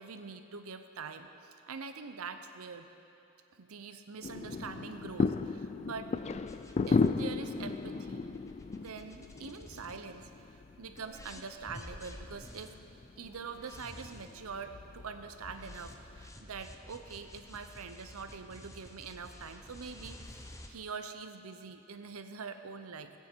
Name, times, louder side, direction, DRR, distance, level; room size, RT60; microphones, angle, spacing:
voice 1, 0.0-2.9 3.6-6.1 6.9-8.2 8.7-10.3 10.8-12.7 13.2-20.4 20.7-23.1, right 5 dB, 75° right, 8 dB, 0.7 m, -44 dB
sound 1, 4.2-16.3, left 4 dB, 30° left, 0.3 m, -36 dB
sound 2, 6.5-10.5 11.0-20.7, left 1 dB, 15° left, 0.7 m, -51 dB
16.5 x 9.1 x 4.6 m, 2.7 s
head